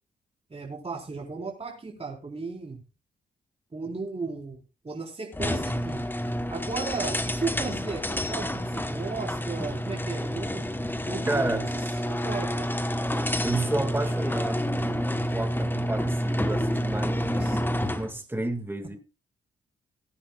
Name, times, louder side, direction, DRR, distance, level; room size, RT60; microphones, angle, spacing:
voice 1, 0.5-2.8 3.7-4.6 4.8-6.0 6.5-10.6 11.1-11.8 12.1-12.7 17.3-17.6, right 4 dB, 35° right, 4.3 m, -35 dB
sound 1, 5.3-18.1, equal, 10° left, 1.1 m, -29 dB
voice 2, 11.3-11.6 13.4-19.0, right 2 dB, 10° right, 2.0 m, -31 dB
19.0 x 10.0 x 2.4 m
cardioid pair, 65°, 19 cm